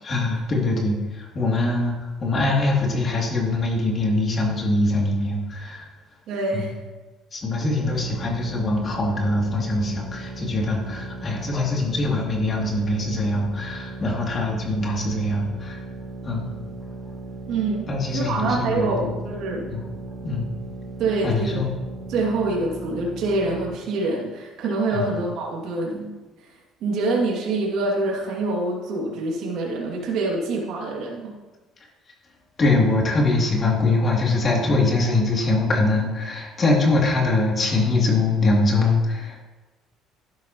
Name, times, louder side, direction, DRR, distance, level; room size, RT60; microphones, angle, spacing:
voice 1, 0.0-5.9 6.5-6.7 7.3-15.8 16.2-16.6 17.9-19.1 19.7-19.9 20.2-20.5 21.2-21.7 24.9-25.1 32.6-39.4, left 2 dB, 35° left, -2 dB, 2.9 m, -23 dB
voice 2, 6.3-6.7 17.5-17.9 18.1-19.7 21.0-21.6 22.1-26.1 26.8-31.3, right 3 dB, 70° right, -2 dB, 2.5 m, -25 dB
sound 1, 7.8-23.8, right 2 dB, 10° right, 2.6 m, -37 dB
11.0 x 11.0 x 3.1 m, 1.2 s
cardioid pair, 100°, 0 cm